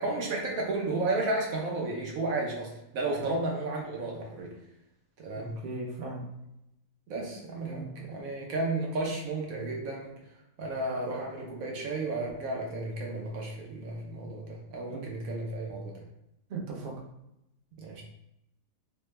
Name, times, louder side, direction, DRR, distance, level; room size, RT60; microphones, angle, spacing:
voice 1, 0.0-4.5 5.2-5.6 7.1-10.1 10.6-15.9 17.8-18.0, right 2 dB, 70° right, -1 dB, 1.0 m, -33 dB
voice 2, 5.3-6.3 7.6-7.9 14.9-15.0 16.5-16.9, right 3 dB, 50° right, -2 dB, 0.8 m, -38 dB
3.2 x 2.1 x 3.1 m, 0.85 s
omnidirectional pair, 1.5 m